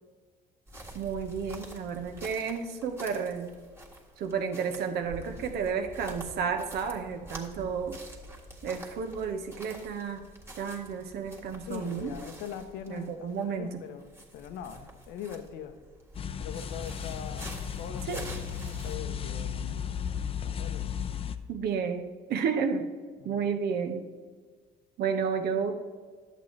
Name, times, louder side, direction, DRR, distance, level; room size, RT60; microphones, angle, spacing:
sound 1, 0.7-18.9, right 1 dB, 15° right, 1.7 m, -47 dB
voice 1, 0.9-3.5 4.2-8.0 8.6-10.3 10.6-12.1 12.9-13.8 18.1-18.4 21.5-22.9 23.2-24.1 25.0-25.8, right 6 dB, 70° right, 6 dB, 1.0 m, -32 dB
voice 2, 11.7-15.8 16.4-19.9 20.4-21.0 23.2-23.5, left 8 dB, 90° left, 9 dB, 0.8 m, -42 dB
sound 2, 16.1-21.4, left 8 dB, 35° left, 0.5 m, -35 dB
11.0 x 8.1 x 3.2 m, 1.5 s
cardioid pair, 110°, 17 cm